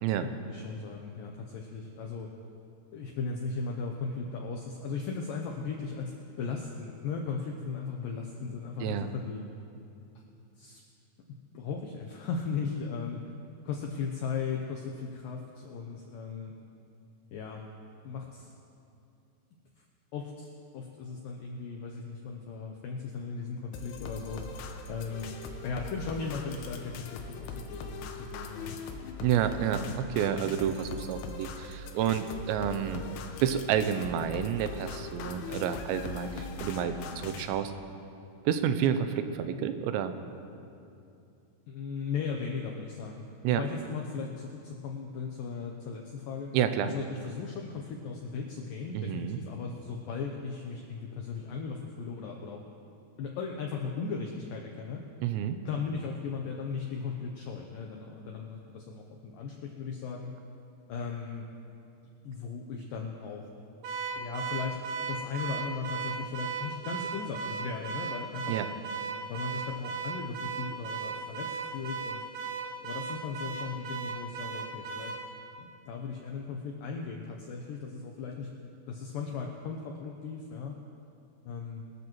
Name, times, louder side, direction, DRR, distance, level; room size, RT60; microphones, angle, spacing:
voice 1, 0.2-2.3 2.9-9.4 10.6-10.8 11.5-13.2 13.6-16.5 17.3-17.6 18.0-18.5 19.8-19.9 20.1-24.4 24.9-25.4 25.6-28.8 41.7-46.5 46.8-52.6 53.2-55.0 55.7-60.3 60.9-61.5 62.2-63.5 64.2-68.6 69.3-72.2 72.8-75.1 75.6-80.8 81.4-81.9, left 5 dB, 90° left, 1 dB, 1.9 m, -37 dB
sound 1, 23.7-37.4, left 4 dB, 75° left, 2.8 m, -41 dB
voice 2, 29.2-33.0 33.4-37.7 38.5-40.2 43.4-43.6 46.5-46.9 48.9-49.4 55.2-55.6 68.5-68.7, right 9 dB, 90° right, 9 dB, 2.9 m, -29 dB
Car / Alarm, 63.8-75.3, right 5 dB, 70° right, 2.1 m, -36 dB
22.5 x 13.0 x 3.1 m, 2.6 s
omnidirectional pair, 5.1 m